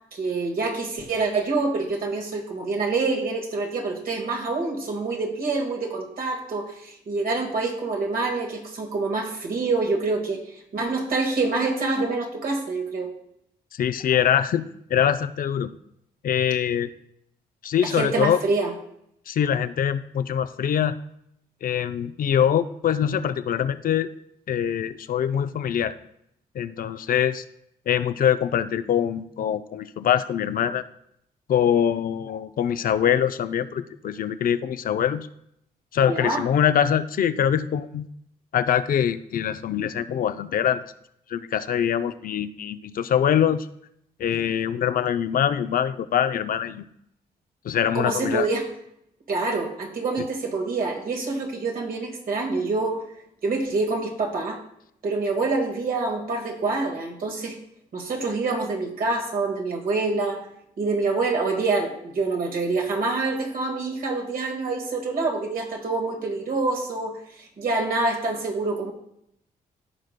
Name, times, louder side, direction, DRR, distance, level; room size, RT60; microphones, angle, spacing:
voice 1, 0.1-10.4 10.7-13.1 17.8-18.7 36.0-36.4 47.9-48.7 49.3-53.0 53.4-54.6 55.0-57.6 57.9-60.4 60.8-68.9, right 3 dB, 65° right, 0 dB, 1.8 m, -26 dB
voice 2, 13.7-15.7 16.2-16.9 17.6-18.4 19.3-21.0 21.6-24.1 24.5-25.9 26.5-27.4 27.9-30.8 31.5-35.3 35.9-38.1 38.5-40.8 41.3-43.7 44.2-46.8 47.6-48.5, left 9 dB, 65° left, 11 dB, 0.5 m, -23 dB
15.0 x 5.0 x 2.2 m, 0.75 s
cardioid pair, 70°, 16 cm